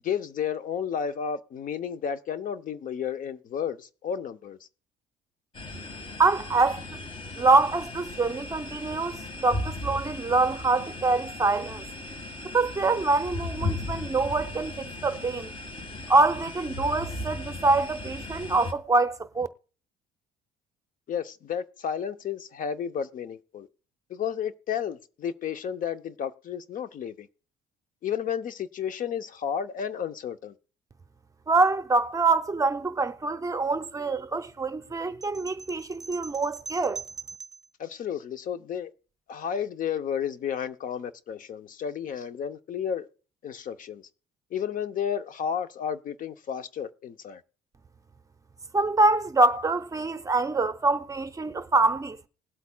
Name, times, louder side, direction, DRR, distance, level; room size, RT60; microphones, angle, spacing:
voice 1, 0.0-4.6 21.1-23.7 24.1-27.3 28.0-30.5 37.8-38.9 39.3-43.1 43.4-44.1 44.5-47.4, left 8 dB, 50° left, 0.7 m, -32 dB
sound 1, 5.5-18.7, left 2 dB, 30° left, 1.7 m, -37 dB
voice 2, 6.2-6.8 7.4-11.8 12.5-15.5 16.1-19.5 31.5-37.0 48.7-52.2, right 3 dB, 20° right, 0.7 m, -25 dB
sound 2, 35.2-37.7, right 4 dB, 5° right, 1.6 m, -42 dB
20.5 x 8.2 x 2.3 m
cardioid pair, 110°, 17 cm